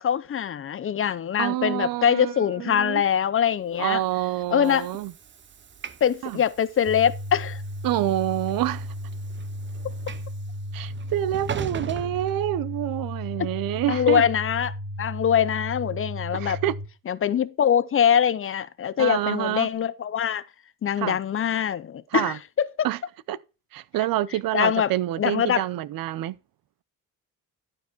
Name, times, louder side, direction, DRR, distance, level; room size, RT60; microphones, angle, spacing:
voice 1, 0.0-4.0 4.5-4.9 6.0-7.6 13.4-13.5 13.9-16.6 17.1-20.4 20.8-22.7 24.5-24.9 25.2-25.6, left 8 dB, 40° left, 0.6 m, -23 dB
voice 2, 1.4-3.0 3.8-5.1 6.2-6.4 7.8-8.9 10.7-14.2 16.3-16.7 19.0-19.7 21.0-21.2 22.1-22.4 22.8-23.0 23.3-23.4 23.7-26.4, right 13 dB, 85° right, 0.7 m, -27 dB
Train / Sliding door, 3.8-13.1, right 7 dB, 35° right, 0.7 m, -41 dB
sound 1, 6.9-16.9, equal, 20° right, 2.9 m, -35 dB
12.0 x 4.8 x 4.5 m
cardioid pair, 125°, 33 cm